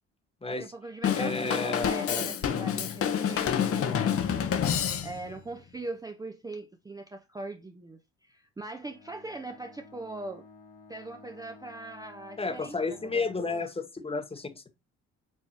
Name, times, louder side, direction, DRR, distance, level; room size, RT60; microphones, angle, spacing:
voice 1, 0.5-4.2 5.0-10.4 10.9-13.3, right 2 dB, 10° right, 0.4 m, -41 dB
Drum kit / Drum, 1.0-5.4, left 8 dB, 45° left, 0.7 m, -28 dB
voice 2, 1.1-2.3 12.4-14.7, left 3 dB, 20° left, 0.8 m, -32 dB
Bowed string instrument, 8.8-13.7, left 4 dB, 70° left, 1.8 m, -53 dB
4.5 x 2.9 x 2.8 m
hypercardioid pair, 55°, 31 cm